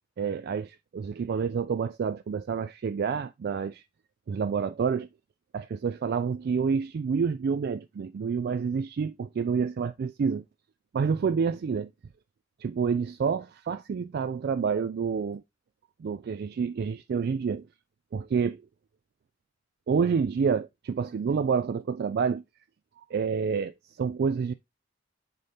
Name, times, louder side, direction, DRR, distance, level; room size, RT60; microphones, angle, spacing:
voice 1, 0.2-3.8 4.3-5.1 5.5-10.4 10.9-11.9 12.6-15.4 16.0-17.7 18.1-18.6 19.9-22.4 23.0-24.5, right 6 dB, 55° right, 0.3 m, -28 dB
6.7 x 4.2 x 3.4 m
head